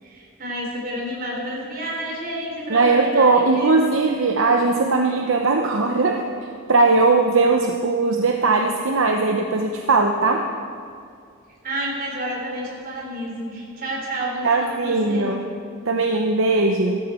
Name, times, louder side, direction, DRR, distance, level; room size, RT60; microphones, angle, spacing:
voice 1, 0.0-3.8 11.6-15.3, right 1 dB, 40° right, -2 dB, 3.8 m, -30 dB
voice 2, 2.7-6.2 6.7-10.5 14.4-15.5 15.9-17.0, right 3 dB, 65° right, 2 dB, 0.8 m, -19 dB
16.5 x 13.5 x 4.5 m, 2.4 s
head